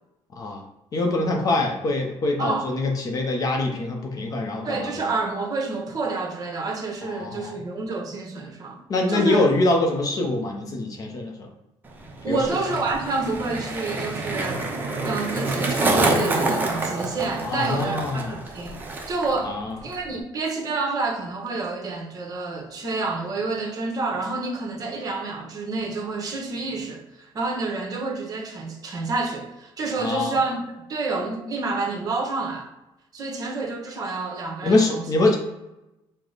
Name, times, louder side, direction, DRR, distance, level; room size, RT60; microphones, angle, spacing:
voice 1, 0.9-5.1 7.0-7.5 8.9-11.5 12.3-12.4 17.4-18.4 19.4-19.8 30.0-30.3 34.6-35.4, left 2 dB, 40° left, 0.6 m, -24 dB
voice 2, 2.4-2.7 4.6-8.8 9.1-9.4 12.2-14.7 15.0-30.6 30.9-32.7 33.1-35.0, right 3 dB, 40° right, 1.0 m, -29 dB
Skateboard, 11.8-19.4 19.7-20.2, right 2 dB, 20° right, 0.7 m, -27 dB
4.8 x 2.1 x 3.9 m
cardioid pair, 140°, 9 cm